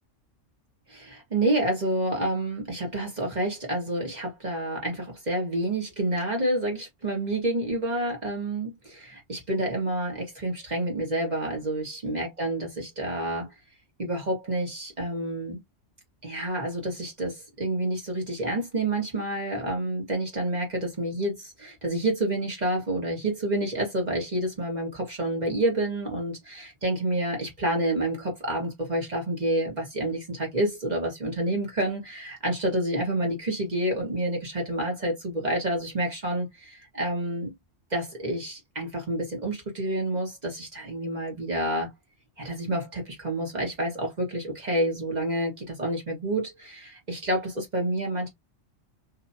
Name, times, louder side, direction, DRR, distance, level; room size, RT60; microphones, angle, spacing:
voice 1, 0.9-13.5 14.0-15.6 16.2-37.5 37.9-41.9 42.4-48.3, right 1 dB, 35° right, 1.5 m, -29 dB
2.9 x 2.9 x 2.6 m
omnidirectional pair, 1.3 m